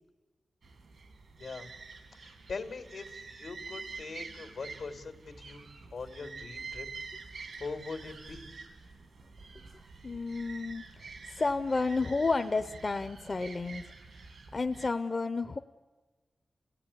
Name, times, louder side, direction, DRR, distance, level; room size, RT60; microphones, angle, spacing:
sound 1, 0.6-14.9, right 4 dB, 90° right, 2.4 m, -47 dB
voice 1, 1.4-1.7 2.2-6.9 7.6-8.5, left 4 dB, 85° left, 5 dB, 2.4 m, -42 dB
voice 2, 10.0-10.8 11.3-13.8 14.5-15.6, left 3 dB, 45° left, 8 dB, 0.7 m, -31 dB
29.5 x 16.0 x 9.9 m, 1.3 s
wide cardioid pair, 70°, 0 cm